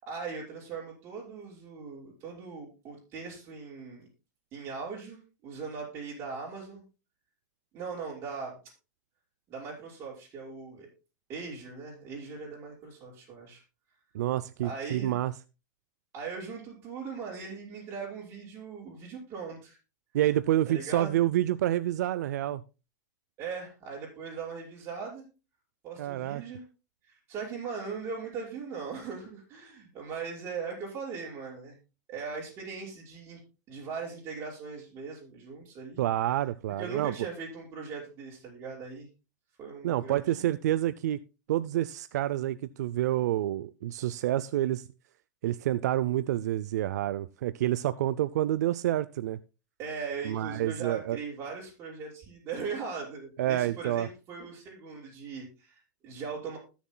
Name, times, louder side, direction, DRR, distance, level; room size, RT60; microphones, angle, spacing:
voice 1, 0.0-4.1 4.5-6.8 7.7-8.6 9.5-10.9 11.3-13.6 14.6-15.2 16.1-19.8 20.7-21.1 23.4-25.2 25.8-26.6 27.0-31.8 32.1-33.4 33.7-36.0 36.8-39.1 39.6-40.5 49.8-56.6, right 5 dB, 30° right, 5.6 m, -39 dB
voice 2, 14.1-15.3 20.1-22.6 26.0-26.4 36.0-37.1 39.8-41.2 41.5-44.9 45.4-49.4 50.2-51.2 53.4-54.1, right 13 dB, 75° right, 0.4 m, -28 dB
20.5 x 7.1 x 2.2 m
supercardioid pair, 155°, 9 cm